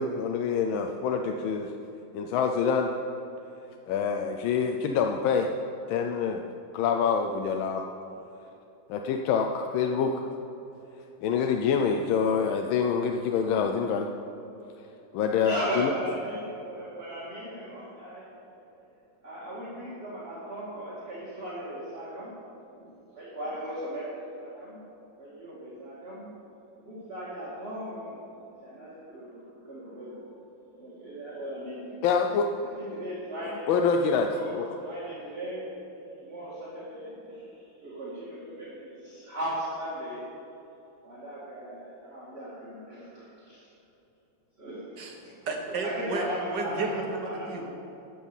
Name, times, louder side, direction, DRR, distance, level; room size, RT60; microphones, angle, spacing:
voice 1, 0.0-1.7 2.1-2.9 3.9-5.5 5.9-6.4 6.7-7.8 8.9-10.2 11.2-14.1 15.1-15.9 32.0-32.5 33.7-34.6, left 6 dB, 75° left, 4 dB, 1.3 m, -26 dB
voice 2, 15.4-18.2 18.6-18.7 19.2-22.3 22.8-24.8 25.2-26.3 26.8-28.2 28.6-30.3 30.7-32.0 32.8-33.8 34.3-40.3 41.0-43.6 44.6-45.0 45.8-46.9 47.2-47.5, right 1 dB, 30° right, -9 dB, 2.4 m, -37 dB
voice 3, 45.5-46.2 46.5-47.7, right 3 dB, 55° right, 2 dB, 1.9 m, -32 dB
13.5 x 5.5 x 7.0 m, 3.0 s
omnidirectional pair, 2.3 m